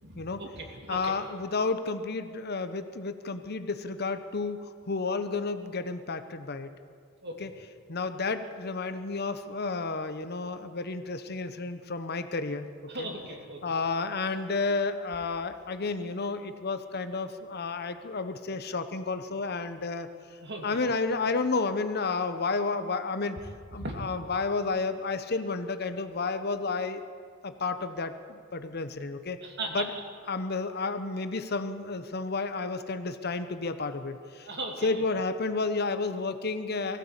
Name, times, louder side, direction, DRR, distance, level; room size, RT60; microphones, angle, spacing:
voice 1, 0.0-1.1 7.2-7.4 12.9-13.6 20.4-20.8 23.8-24.0 29.4-29.9 34.4-35.0, right 2 dB, 55° right, 2 dB, 3.1 m, -37 dB
voice 2, 0.9-6.7 7.4-7.5 7.9-12.7 13.0-13.1 13.6-20.1 20.6-23.4 23.7-27.0 27.4-29.4 29.7-29.9 30.3-34.5 34.8-37.0, left 3 dB, 50° left, 10 dB, 1.0 m, -31 dB
20.0 x 15.5 x 8.3 m, 2.2 s
head